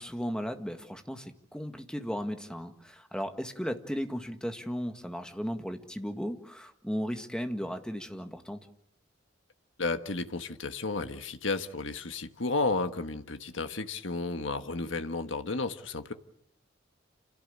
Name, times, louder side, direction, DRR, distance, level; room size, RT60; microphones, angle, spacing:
voice 1, 0.0-8.6, equal, 5° left, 1.8 m, -35 dB
voice 2, 9.8-16.1, left 3 dB, 75° left, 1.5 m, -32 dB
28.5 x 17.0 x 8.7 m
head